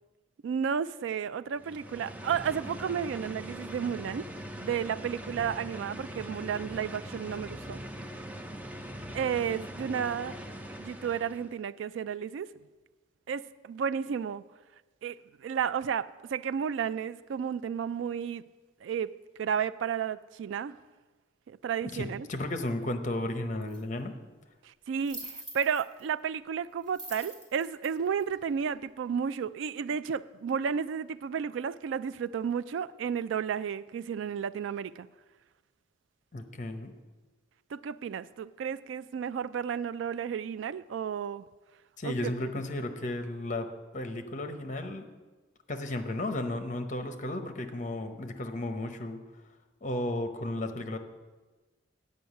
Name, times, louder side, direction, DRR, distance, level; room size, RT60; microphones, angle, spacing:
voice 1, 0.4-4.3 4.6-7.8 9.1-10.4 10.8-12.5 13.3-14.4 15.0-18.5 18.8-19.1 19.4-20.8 21.5-22.3 24.6-35.1 37.7-41.4 42.0-42.3, right 7 dB, 80° right, 0.3 m, -32 dB
sound 1, 1.5-11.6, equal, 10° right, 0.5 m, -42 dB
voice 2, 21.9-24.2 36.3-36.9 42.0-45.1 45.7-49.2 49.8-51.0, left 1 dB, 40° left, 0.8 m, -34 dB
sound 2, 23.7-23.8 25.0-26.0 26.9-28.7, right 1 dB, 25° right, 1.8 m, -44 dB
9.3 x 5.5 x 8.2 m
head